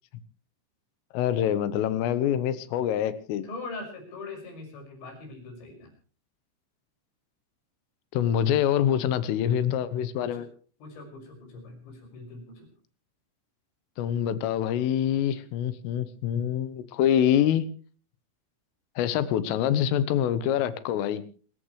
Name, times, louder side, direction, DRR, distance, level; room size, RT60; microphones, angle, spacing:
voice 1, 1.1-3.5 8.1-10.5 14.0-17.7 19.0-21.2, left 10 dB, 85° left, 14 dB, 3.8 m, -25 dB
voice 2, 3.4-5.9 10.2-10.4 10.8-12.7, left 3 dB, 65° left, 3 dB, 8.2 m, -41 dB
27.5 x 14.5 x 3.2 m, 0.40 s
omnidirectional pair, 5.8 m